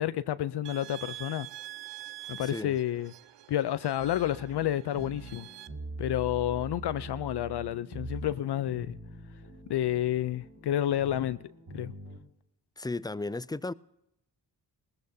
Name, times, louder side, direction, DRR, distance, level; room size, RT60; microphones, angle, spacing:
voice 1, 0.0-1.5 2.3-3.1 3.5-5.5 6.0-9.0 9.7-11.4 11.7-11.9, left 12 dB, 65° left, 0.6 m, -30 dB
sound 1, 0.6-5.7, right 16 dB, 70° right, 0.6 m, -46 dB
voice 2, 2.4-2.8 12.8-13.7, left 2 dB, 10° left, 0.4 m, -34 dB
sound 2, 4.0-12.2, right 2 dB, 90° right, 2.8 m, -44 dB
19.0 x 14.5 x 2.8 m
cardioid pair, 50°, 43 cm